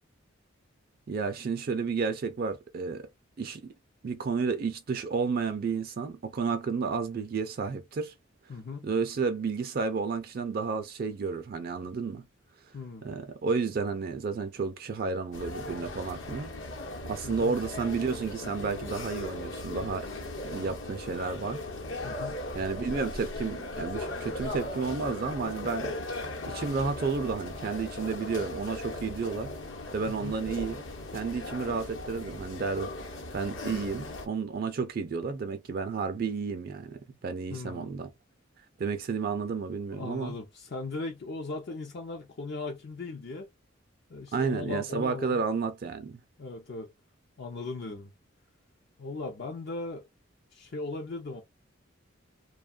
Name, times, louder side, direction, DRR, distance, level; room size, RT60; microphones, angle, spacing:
voice 1, 1.1-3.1 3.4-3.7 4.0-8.1 8.8-12.2 13.0-16.5 17.1-20.1 20.4-21.6 22.5-25.9 26.5-29.5 29.9-30.8 31.1-32.9 33.3-38.1 38.8-40.4 44.3-46.2, right 5 dB, 50° right, 0.4 m, -31 dB
voice 2, 8.5-8.9 12.7-13.0 17.2-17.5 22.0-22.4 30.1-30.4 37.5-37.9 39.9-43.5 44.1-45.4 46.4-46.9 47.4-48.1 49.0-50.0 50.5-51.4, left 3 dB, 55° left, 0.5 m, -38 dB
sound 1, 15.3-34.3, left 2 dB, 75° left, 0.9 m, -38 dB
2.8 x 2.2 x 2.3 m
head